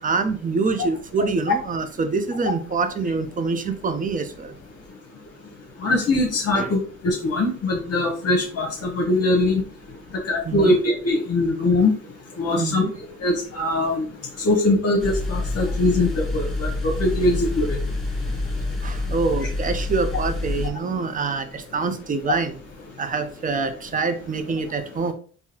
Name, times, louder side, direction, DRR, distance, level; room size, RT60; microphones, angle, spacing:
voice 1, 0.0-4.5 6.5-6.7 10.4-10.8 12.5-12.9 18.6-22.6 23.0-25.1, right 4 dB, 25° right, 0.6 m, -25 dB
voice 2, 5.8-9.6 10.3-11.9 12.4-12.8 13.2-14.0 14.4-16.7 17.0-17.8, left 2 dB, 55° left, 0.9 m, -21 dB
sound 1, 15.0-20.7, left 2 dB, ahead, 1.1 m, -27 dB
3.7 x 2.7 x 2.8 m
cardioid pair, 90°, 30 cm